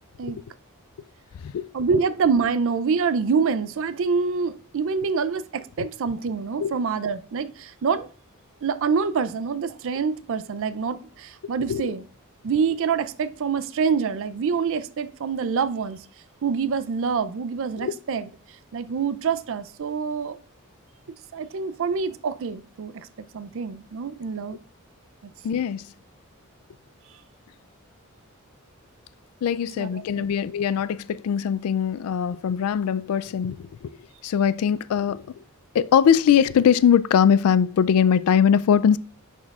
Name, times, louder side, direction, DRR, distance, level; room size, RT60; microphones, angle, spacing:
voice 1, 1.7-8.1 8.6-12.0 12.4-16.0 16.4-18.3 18.7-20.4 21.3-24.6 25.2-25.3 29.8-30.2, right 5 dB, 65° right, 0.4 m, -26 dB
voice 2, 25.4-25.8 29.4-33.9 34.2-35.2 35.7-39.0, left 8 dB, 85° left, 0.3 m, -21 dB
10.5 x 4.4 x 2.4 m
head